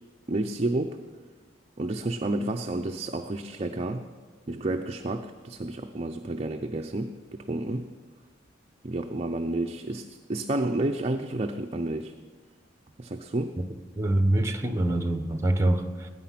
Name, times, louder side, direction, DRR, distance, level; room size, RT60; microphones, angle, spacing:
voice 1, 0.3-1.0 1.8-4.1 4.5-7.9 8.8-12.1 13.0-13.6, right 2 dB, 30° right, 4 dB, 0.5 m, -30 dB
voice 2, 14.0-16.1, right 1 dB, 15° right, 7 dB, 1.0 m, -25 dB
19.0 x 9.4 x 5.8 m, 1.6 s
head